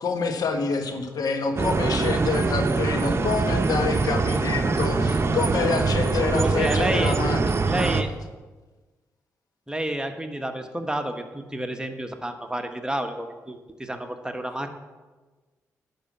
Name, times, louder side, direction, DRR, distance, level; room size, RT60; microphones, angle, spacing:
voice 1, 0.0-8.0, left 4 dB, 65° left, 5 dB, 1.3 m, -27 dB
sound 1, 1.6-8.0, right 3 dB, 40° right, 0.8 m, -23 dB
voice 2, 6.3-7.2 7.7-8.1 9.7-14.7, right 1 dB, 10° right, 5 dB, 1.3 m, -30 dB
10.5 x 5.7 x 7.4 m, 1.3 s
supercardioid pair, 45°, 7 cm